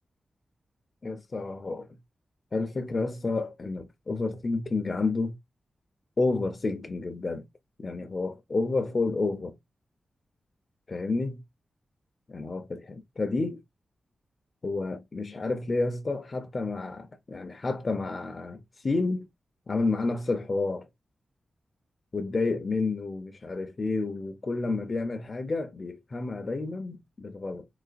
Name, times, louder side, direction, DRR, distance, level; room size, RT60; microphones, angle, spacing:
voice 1, 1.0-1.9 2.5-5.4 6.2-7.5 7.8-9.6 10.9-11.3 12.3-13.6 14.6-19.3 19.7-20.9 22.1-27.7, left 3 dB, 30° left, 0.5 m, -30 dB
3.8 x 2.9 x 2.4 m
wide cardioid pair, 175°, 0 cm